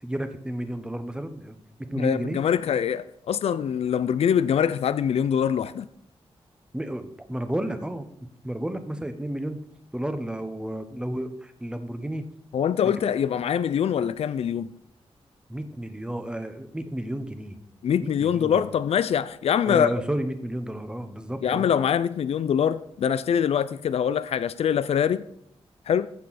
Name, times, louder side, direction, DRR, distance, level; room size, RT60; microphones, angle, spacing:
voice 1, 0.0-2.4 6.7-8.1 8.4-9.6 9.9-12.3 12.8-12.9 15.5-17.6 18.0-18.6 19.6-21.7, right 1 dB, 10° right, 1.0 m, -32 dB
voice 2, 2.0-5.9 12.5-14.7 17.8-19.9 21.4-25.2 25.9-26.1, left 8 dB, 75° left, 0.4 m, -24 dB
14.5 x 6.8 x 4.2 m
wide cardioid pair, 120°, 11 cm